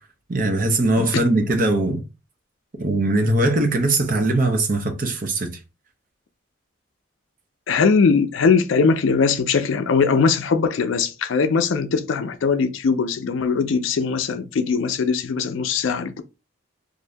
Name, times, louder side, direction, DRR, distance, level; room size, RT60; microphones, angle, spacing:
voice 1, 0.3-2.0 2.8-5.6, right 2 dB, 45° right, 0.7 m, -20 dB
voice 2, 7.7-16.2, left 5 dB, 80° left, 0.4 m, -20 dB
2.6 x 2.6 x 3.3 m
head